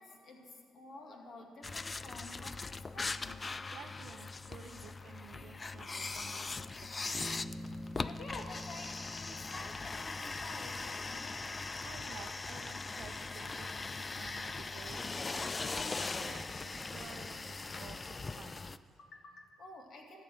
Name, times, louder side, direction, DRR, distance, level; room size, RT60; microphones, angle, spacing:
voice 1, 0.0-3.4 4.6-4.8 6.7-7.1 8.0-11.6 19.0-20.2, left 2 dB, 60° left, 2 dB, 2.0 m, -50 dB
sound 1, 1.6-18.8, left 3 dB, 30° left, 0.3 m, -40 dB
voice 2, 3.7-6.7 7.0-7.5 11.8-18.8, right 7 dB, 75° right, 2 dB, 0.7 m, -53 dB
Bass guitar, 7.1-10.9, equal, 40° right, 1.1 m, -47 dB
sound 2, 12.7-18.6, right 2 dB, 20° right, 0.7 m, -59 dB
13.0 x 6.7 x 7.6 m, 2.6 s
cardioid pair, 90°, 0 cm